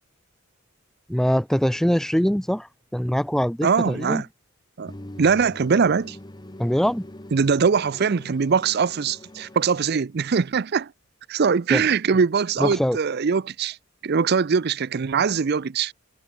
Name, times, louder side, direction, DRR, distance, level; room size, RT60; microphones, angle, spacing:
voice 1, 1.1-4.2 6.6-7.1 11.7-11.8 12.6-13.0, equal, ahead, 0.4 m, -23 dB
voice 2, 3.6-4.3 4.8-4.9 5.2-6.2 7.3-10.9 11.3-13.8 14.0-15.9, right 5 dB, 50° right, 0.5 m, -22 dB
sound 1, 4.9-9.9, left 1 dB, 20° left, 1.4 m, -43 dB
head